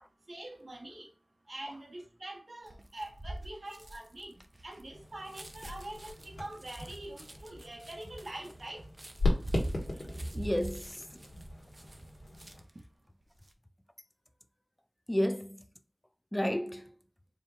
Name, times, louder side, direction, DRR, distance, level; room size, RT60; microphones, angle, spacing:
voice 1, 0.3-1.1 1.5-8.9 9.3-9.5 9.9-10.5, right 1 dB, 60° right, 1.0 m, -45 dB
sound 1, 2.7-12.8 13.2-13.5, right 1 dB, 35° right, 0.5 m, -44 dB
sound 2, 4.9-12.6, left 2 dB, 90° left, 1.3 m, -37 dB
voice 2, 10.3-11.2 15.1-15.7 16.3-16.9, equal, 15° left, 0.4 m, -32 dB
4.4 x 2.3 x 3.4 m
wide cardioid pair, 65°, 0 cm